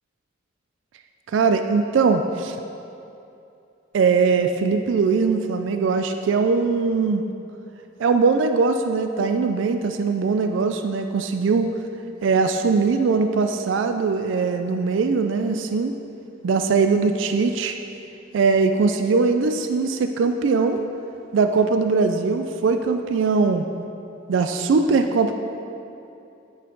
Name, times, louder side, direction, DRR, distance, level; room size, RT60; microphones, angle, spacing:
voice 1, 1.3-2.6 3.9-7.2 8.0-11.7 12.2-15.9 16.4-17.8 18.3-20.8 21.3-23.6 24.3-25.3, right 4 dB, 75° right, 7 dB, 0.3 m, -21 dB
9.3 x 5.6 x 3.8 m, 2.7 s
head